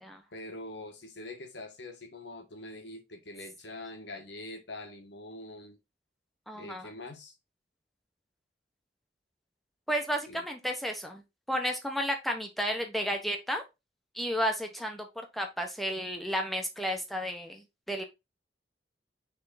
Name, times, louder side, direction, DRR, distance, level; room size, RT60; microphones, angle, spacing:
voice 1, 0.3-5.8 6.5-7.3 10.3-10.4, left 2 dB, 80° left, 1.6 m, -44 dB
voice 2, 6.5-6.9 9.9-11.2 11.5-13.6 14.1-18.0, equal, ahead, 1.2 m, -32 dB
6.3 x 3.7 x 4.0 m
head